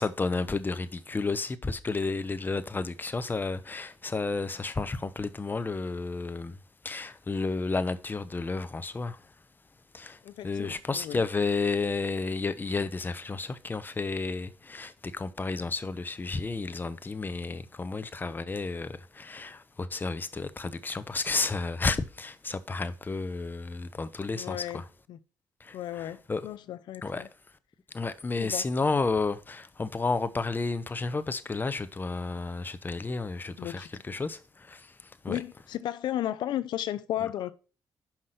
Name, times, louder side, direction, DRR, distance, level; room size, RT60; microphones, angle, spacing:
voice 1, 0.0-6.6 6.8-9.2 9.9-24.8 25.6-26.4 27.0-27.2 27.9-35.4, left 3 dB, 25° left, 0.9 m, -32 dB
voice 2, 10.2-11.2 24.3-25.2 25.7-27.3 28.4-28.7 33.6-33.9 35.3-37.5, left 12 dB, 80° left, 0.6 m, -34 dB
5.9 x 5.4 x 6.5 m
cardioid pair, 80°, 8 cm